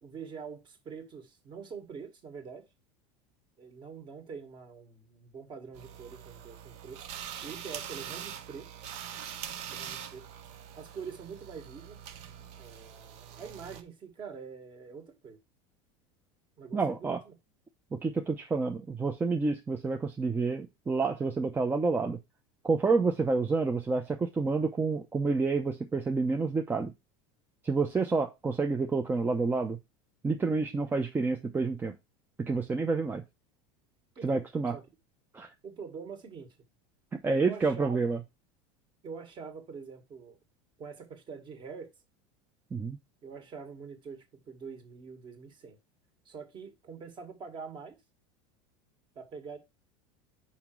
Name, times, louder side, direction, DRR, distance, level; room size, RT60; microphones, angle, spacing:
voice 1, 0.0-2.6 3.6-7.0 7.4-8.7 9.7-10.2 10.8-12.0 12.6-15.4 16.6-17.3 34.1-34.4 34.7-34.8 35.6-36.5 37.4-38.0 39.0-40.4 40.8-41.9 43.2-45.8 46.2-48.0 49.1-49.6, right 5 dB, 35° right, 1.8 m, -44 dB
sound 1, 5.7-13.8, right 9 dB, 55° right, 1.0 m, -43 dB
voice 2, 16.7-17.2 17.9-22.2 22.6-26.9 27.6-29.8 30.2-31.9 32.4-33.2 34.2-34.7 35.3-35.5 37.1-38.2 42.7-43.0, right 4 dB, 15° right, 0.7 m, -29 dB
5.7 x 5.2 x 4.6 m
supercardioid pair, 130°, 14 cm